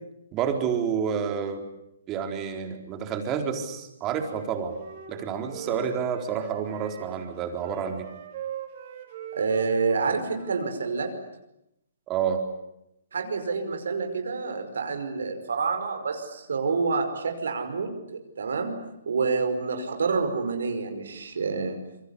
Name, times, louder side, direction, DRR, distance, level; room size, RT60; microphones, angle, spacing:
voice 1, 0.3-1.7 2.1-4.8 5.1-8.1 12.1-12.5, right 7 dB, 25° right, 4 dB, 4.2 m, -29 dB
Wind instrument woodwind instrument, 4.4-10.7, right 8 dB, 45° right, 5.4 m, -41 dB
voice 2, 9.3-11.1 13.1-18.8 19.1-21.8, right 4 dB, 75° right, 6 dB, 5.4 m, -28 dB
27.5 x 23.5 x 8.6 m, 0.84 s
hypercardioid pair, 145°, 0 cm